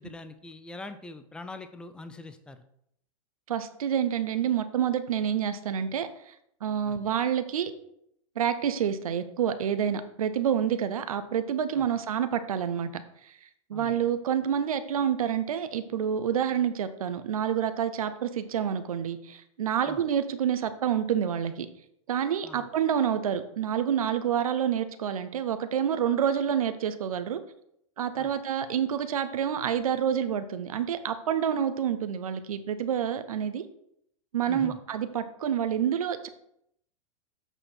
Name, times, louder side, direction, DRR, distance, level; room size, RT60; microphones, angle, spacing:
voice 1, 0.0-2.6 6.9-7.0 11.8-11.9 13.7-14.0 19.9-20.0 22.4-22.7 28.2-28.3 34.5-34.8, left 2 dB, 5° left, 10 dB, 0.5 m, -43 dB
voice 2, 3.5-6.3 6.6-7.7 8.4-12.9 13.2-13.3 13.7-21.7 22.1-27.4 28.0-33.6 34.3-36.3, right 8 dB, 85° right, 10 dB, 0.7 m, -28 dB
7.9 x 4.4 x 4.3 m, 0.73 s
hypercardioid pair, 115°, 18 cm